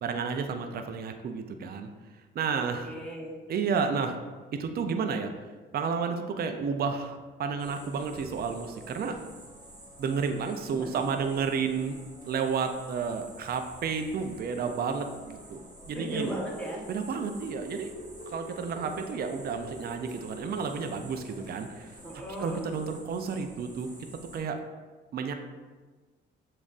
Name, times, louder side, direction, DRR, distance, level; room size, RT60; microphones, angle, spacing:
voice 1, 0.0-1.9 2.3-2.9 3.5-4.2 4.6-5.3 5.7-9.2 10.0-12.0 12.3-16.4 16.9-17.9 18.3-21.9 22.4-23.9 24.3-24.6 25.1-25.3, right 5 dB, 50° right, 6 dB, 0.5 m, -31 dB
voice 2, 2.6-3.4 10.6-10.9 15.9-16.8 22.0-22.7, right 1 dB, 5° left, -4 dB, 1.1 m, -37 dB
sound 1, 7.6-24.4, right 1 dB, 20° right, 1.3 m, -47 dB
7.1 x 2.5 x 2.5 m, 1.3 s
cardioid pair, 90°, 20 cm